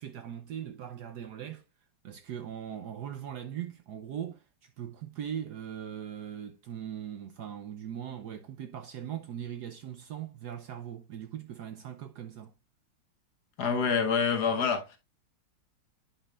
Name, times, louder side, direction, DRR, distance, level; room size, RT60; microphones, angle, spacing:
voice 1, 0.0-1.6 2.0-12.5, right 9 dB, 65° right, 1.0 m, -40 dB
voice 2, 13.6-15.0, left 6 dB, 55° left, 1.4 m, -27 dB
9.8 x 5.3 x 2.3 m
omnidirectional pair, 2.2 m